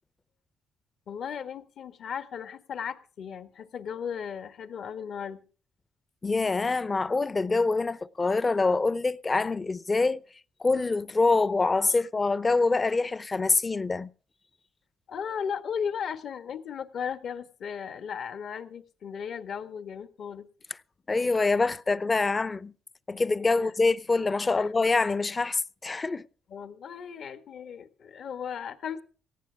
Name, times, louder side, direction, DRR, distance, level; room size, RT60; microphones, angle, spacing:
voice 1, 1.1-5.4 15.1-20.4 23.6-23.7 24.5-24.7 26.5-29.0, left 7 dB, 65° left, 1.6 m, -36 dB
voice 2, 6.2-10.2 10.6-14.1 21.1-22.7 23.1-26.3, left 3 dB, 25° left, 0.6 m, -25 dB
19.0 x 15.0 x 3.5 m
cardioid pair, 90°, 0 cm